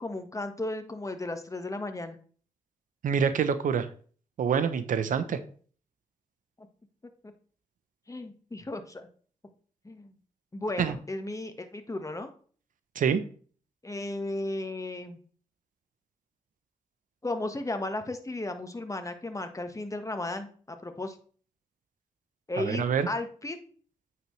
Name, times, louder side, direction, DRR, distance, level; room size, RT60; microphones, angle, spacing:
voice 1, 0.0-2.2 8.1-9.1 9.8-10.1 10.5-12.3 13.8-15.2 17.2-21.2 22.5-23.6, left 2 dB, 25° left, 7 dB, 1.5 m, -35 dB
voice 2, 3.0-3.9 4.4-5.4 10.8-10.9 13.0-13.2 22.6-23.1, right 7 dB, 75° right, 12 dB, 0.9 m, -26 dB
9.0 x 6.1 x 3.3 m, 0.43 s
supercardioid pair, 45°, 14 cm